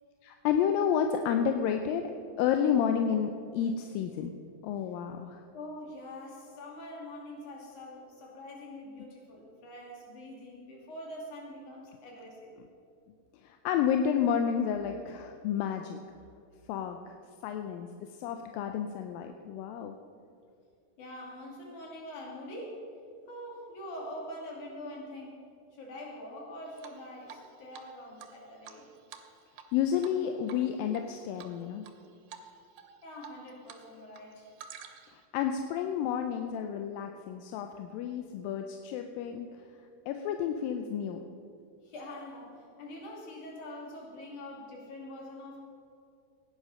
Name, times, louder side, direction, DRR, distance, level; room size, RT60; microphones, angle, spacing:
voice 1, 0.2-2.1 2.4-4.3 4.6-5.4 12.6-12.7 13.4-16.0 16.7-17.2 17.4-17.9 18.2-19.9 29.7-31.8 35.1-39.5 40.1-41.2, left 8 dB, 85° left, 6 dB, 2.3 m, -30 dB
voice 2, 5.5-12.5 21.0-22.8 23.3-28.9 33.0-34.5 41.8-45.6, left 1 dB, 60° left, -2 dB, 3.9 m, -44 dB
Drip, 26.8-27.5 27.7-27.8 28.2-29.7 30.0-30.2 30.5-31.0 31.4-31.9 32.3-32.5 32.8-33.8 34.1-35.2, right 8 dB, 80° right, 2.7 m, -49 dB
16.5 x 10.0 x 5.4 m, 2.4 s
omnidirectional pair, 4.1 m